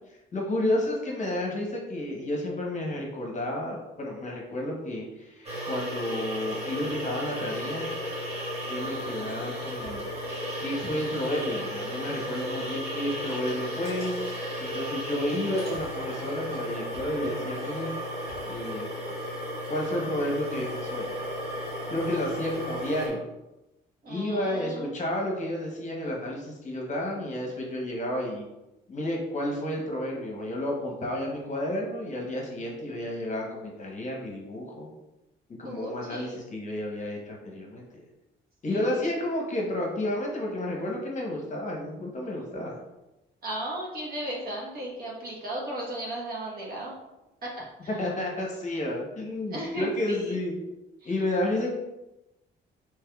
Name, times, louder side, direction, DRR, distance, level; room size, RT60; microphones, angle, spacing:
voice 1, 0.3-7.9 8.7-10.1 10.6-14.1 14.6-17.9 18.5-18.9 19.7-21.1 21.9-23.2 24.1-28.4 28.9-34.9 35.6-38.0 38.6-42.8 48.0-50.6 51.0-51.7, left 1 dB, 35° left, -1 dB, 0.9 m, -31 dB
sound 1, 5.4-23.1, equal, 30° right, 1.3 m, -34 dB
voice 2, 24.0-24.9 35.6-36.3 38.7-39.1 43.4-46.9 47.4-47.9 49.5-50.4 51.0-51.1, right 1 dB, 50° right, -3 dB, 1.1 m, -36 dB
3.3 x 3.1 x 2.3 m, 0.96 s
cardioid pair, 90°, 20 cm